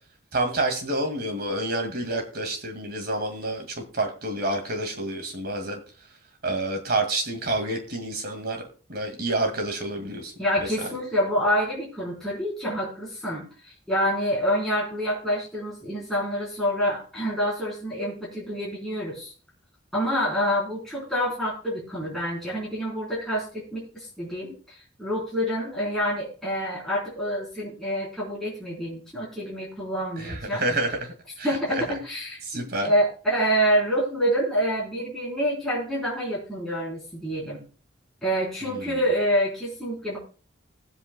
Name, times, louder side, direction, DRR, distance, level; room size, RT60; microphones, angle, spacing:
voice 1, 0.3-5.8 6.4-8.6 8.9-10.3 10.6-11.0 30.2-32.0 32.4-32.9 38.6-39.0, right 2 dB, 55° right, 4 dB, 2.2 m, -29 dB
voice 2, 10.4-19.3 19.9-24.6 25.0-30.6 31.4-37.6 38.2-40.2, equal, ahead, -6 dB, 3.7 m, -27 dB
20.0 x 8.0 x 2.3 m, 0.37 s
head